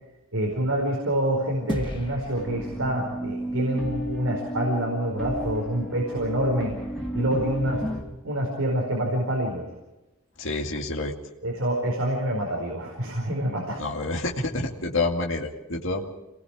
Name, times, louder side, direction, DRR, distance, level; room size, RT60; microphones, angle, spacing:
voice 1, 0.3-6.7 7.1-7.9 8.2-9.7 11.4-13.8, right 1 dB, 80° right, 0 dB, 4.8 m, -26 dB
sound 1, 1.7-4.3, left 1 dB, 25° left, 1.6 m, -36 dB
sound 2, 2.4-8.0, equal, 5° left, 2.9 m, -33 dB
voice 2, 10.4-11.2 13.8-16.1, left 2 dB, 60° left, 0 dB, 2.3 m, -28 dB
27.5 x 20.5 x 5.0 m, 0.98 s
head